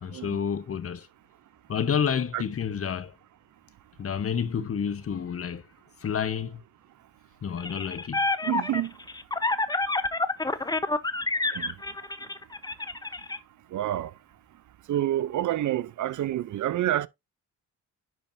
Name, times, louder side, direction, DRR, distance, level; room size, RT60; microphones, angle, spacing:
voice 1, 0.0-1.1 1.7-3.1 4.0-5.6 6.0-6.6 7.4-8.2, left 7 dB, 40° left, 0.8 m, -29 dB
sound 1, 7.6-13.4, left 2 dB, 10° left, 0.7 m, -28 dB
voice 2, 8.4-8.9 11.5-11.7 13.7-14.1 14.9-17.1, right 13 dB, 60° right, 0.5 m, -28 dB
10.5 x 4.5 x 2.5 m
cardioid pair, 65°, 34 cm